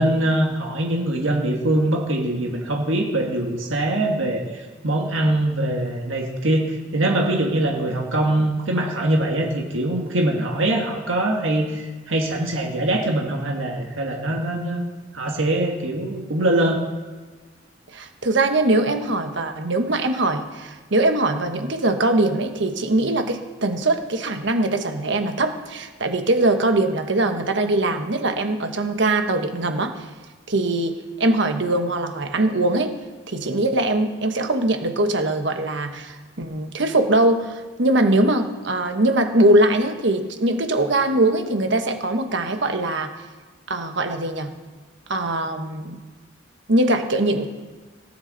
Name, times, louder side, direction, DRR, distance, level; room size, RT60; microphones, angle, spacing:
voice 1, 0.0-4.4 4.8-14.8 15.1-16.8, right 1 dB, 85° right, 1 dB, 1.6 m, -23 dB
voice 2, 17.9-30.0 30.5-32.9 33.3-43.1 43.7-44.5 45.1-46.0 46.7-47.5, right 2 dB, 65° right, 6 dB, 1.3 m, -21 dB
17.0 x 9.5 x 4.0 m, 1.3 s
head